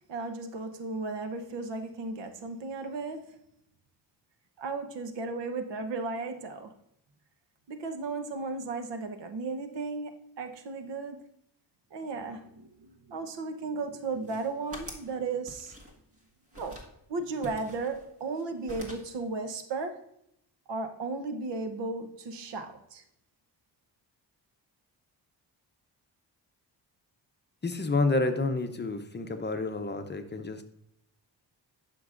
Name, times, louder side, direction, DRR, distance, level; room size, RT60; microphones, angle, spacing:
voice 1, 0.1-3.4 4.6-6.7 7.7-11.2 11.9-15.7 16.6-16.8 17.1-20.0 20.7-23.0, right 3 dB, 80° right, 7 dB, 1.0 m, -35 dB
sound 1, 14.1-15.1 15.5-16.2 16.5-16.9 17.4-18.4 18.7-19.2, equal, 30° right, 1.7 m, -46 dB
voice 2, 27.6-30.6, left 3 dB, 25° left, 7 dB, 0.7 m, -29 dB
11.5 x 5.9 x 2.5 m, 0.76 s
cardioid pair, 90°, 42 cm